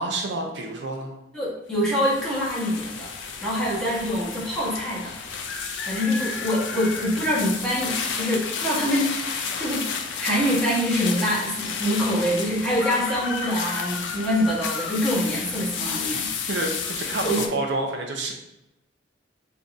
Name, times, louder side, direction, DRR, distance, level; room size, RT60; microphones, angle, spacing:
voice 1, 0.0-1.2 16.5-18.3, right 2 dB, 70° right, 2 dB, 0.6 m, -28 dB
voice 2, 1.3-3.1 3.4-5.2 5.9-9.9 10.1-16.3 17.2-17.4, equal, ahead, -9 dB, 1.3 m, -25 dB
sound 1, 1.7-17.5, left 5 dB, 85° left, 0.5 m, -32 dB
3.9 x 2.6 x 3.4 m, 0.87 s
head